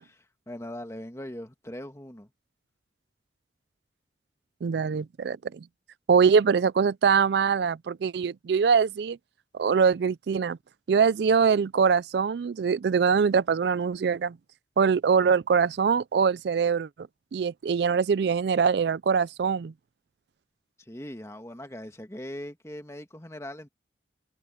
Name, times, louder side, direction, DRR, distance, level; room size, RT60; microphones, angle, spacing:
voice 1, 0.0-2.3 20.8-23.7, left 1 dB, 15° left, 1.8 m, -40 dB
voice 2, 4.6-5.6 6.1-9.2 9.5-10.6 10.9-14.4 14.8-16.9 17.3-19.7, right 6 dB, 65° right, 0.4 m, -23 dB
head